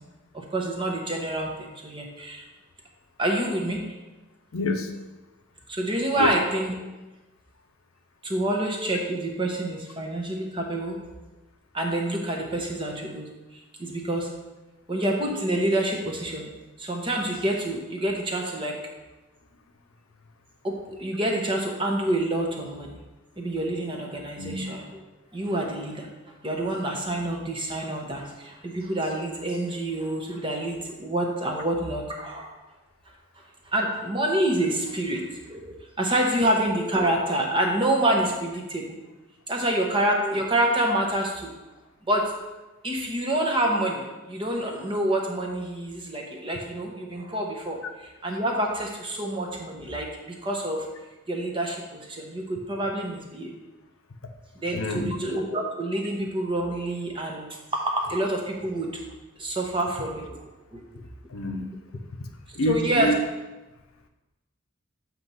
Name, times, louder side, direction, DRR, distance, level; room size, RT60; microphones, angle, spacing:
voice 1, 0.3-2.4 3.2-4.0 5.7-6.7 8.2-11.0 11.7-13.3 13.8-14.3 14.9-16.5 16.8-18.8 20.6-23.0 23.4-25.0 25.3-26.1 26.4-32.5 33.6-39.0 39.5-41.5 42.1-42.3 42.8-50.9 51.3-53.5 54.6-59.0 59.4-60.3 60.7-60.8 62.7-63.1, right 1 dB, 25° right, 1 dB, 0.8 m, -27 dB
voice 2, 4.5-4.9 6.2-6.3 24.4-24.6 54.7-55.2 61.3-61.7 62.5-63.2, left 1 dB, 75° left, 5 dB, 0.6 m, -27 dB
7.7 x 3.0 x 5.4 m, 1.1 s
head